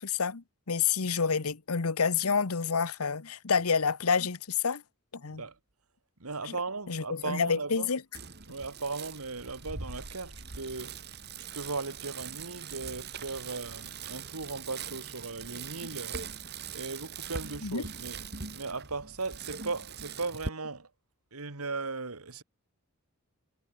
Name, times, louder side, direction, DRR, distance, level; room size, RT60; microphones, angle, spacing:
voice 1, 0.0-4.8 5.1-5.4 6.4-6.6 6.9-8.0 15.8-15.9 17.6-17.8, left 5 dB, 80° left, 1.0 m, -28 dB
voice 2, 6.2-7.9 8.5-10.9 11.5-16.2 16.7-18.2 18.5-20.9 21.3-22.4, right 3 dB, 80° right, 2.2 m, -37 dB
Bicycle, 8.1-20.5, right 5 dB, 50° right, 3.0 m, -42 dB
head